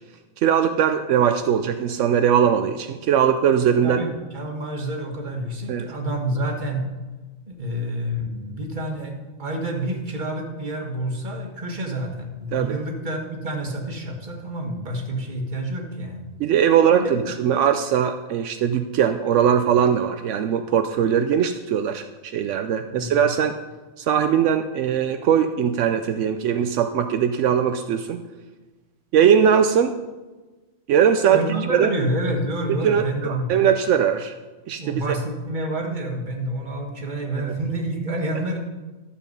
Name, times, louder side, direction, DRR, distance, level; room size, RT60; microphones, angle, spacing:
voice 1, 0.4-4.0 5.7-5.9 12.5-12.8 16.4-23.6 24.0-28.2 29.1-29.9 30.9-31.4 31.7-31.9 32.8-34.3 34.7-35.2 37.4-37.5, right 8 dB, 80° right, 8 dB, 0.9 m, -20 dB
voice 2, 3.8-6.9 7.5-16.2 17.0-17.2 22.9-23.2 31.3-33.5 34.8-38.6, right 1 dB, 40° right, 2 dB, 1.6 m, -28 dB
12.5 x 7.1 x 5.3 m, 1.2 s
omnidirectional pair, 1.3 m